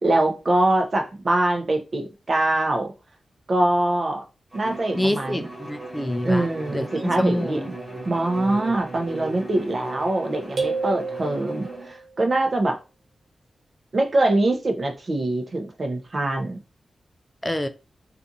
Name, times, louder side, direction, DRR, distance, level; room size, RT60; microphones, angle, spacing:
voice 1, 0.0-2.9 3.5-4.2 4.5-5.5 6.2-7.7 8.0-12.8 13.9-16.6, right 2 dB, 50° right, 0.6 m, -23 dB
Bowed string instrument, 4.5-11.9, right 2 dB, 10° right, 1.2 m, -36 dB
voice 2, 4.9-7.7 17.4-17.7, left 1 dB, 15° left, 0.3 m, -27 dB
sound 1, 10.6-12.1, right 4 dB, 75° right, 0.8 m, -29 dB
2.5 x 2.4 x 2.7 m
cardioid pair, 70°, 0 cm